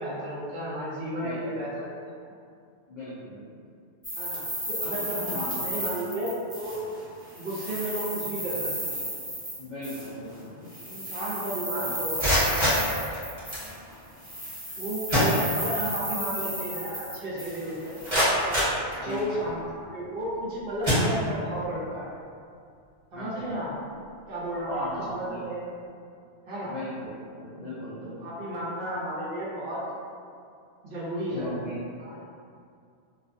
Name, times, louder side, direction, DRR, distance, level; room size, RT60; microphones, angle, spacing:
voice 1, 0.0-2.3 4.2-4.4 4.7-6.3 6.5-6.8 7.3-9.0 10.8-12.7 14.8-18.0 19.0-22.1 23.1-23.9 24.3-25.8 26.5-26.7 28.0-29.8 30.8-31.5 32.0-32.2, right 1 dB, 60° right, -8 dB, 0.8 m, -33 dB
voice 2, 1.2-1.5 2.9-3.5 4.8-4.9 5.3-5.7 9.6-11.1 11.8-11.9 18.9-19.3 23.1-23.5 24.7-25.4 26.6-27.1 27.4-28.3 31.3-31.8, left 1 dB, 55° left, -11 dB, 0.5 m, -38 dB
Coffee Beans, 4.0-7.0 7.3-10.1 10.7-13.9 14.2-18.1, equal, 5° left, 0.7 m, -34 dB
sound 1, 12.1-13.7 14.7-14.8 15.1-16.0 16.3-16.4 17.0-17.1 17.6-19.5 20.2-20.4 20.8-21.7, equal, 30° right, 1.1 m, -26 dB
2.4 x 2.3 x 2.5 m, 2.3 s
omnidirectional pair, 1.2 m